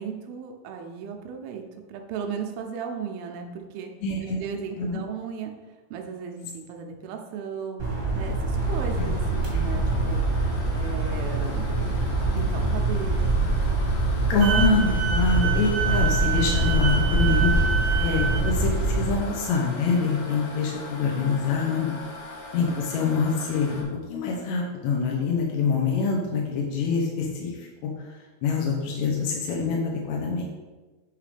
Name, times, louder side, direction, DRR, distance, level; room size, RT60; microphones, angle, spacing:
voice 1, 0.0-1.6 1.9-3.9 4.2-5.5 5.9-7.9 8.2-10.2 10.7-11.8 12.3-13.5, right 6 dB, 80° right, 3 dB, 2.6 m, -35 dB
voice 2, 4.0-4.4 4.8-5.0 9.0-9.1 14.3-17.5 18.0-22.0 22.5-27.7 28.4-30.4, left 4 dB, 75° left, -1 dB, 1.7 m, -25 dB
sound 1, 7.8-19.1, right 2 dB, 30° right, 1.0 m, -24 dB
sound 2, 8.6-23.8, left 2 dB, 60° left, 2.0 m, -41 dB
Wind instrument woodwind instrument, 14.4-18.5, right 7 dB, 60° right, 1.5 m, -28 dB
8.4 x 3.7 x 5.0 m, 1.2 s
omnidirectional pair, 4.3 m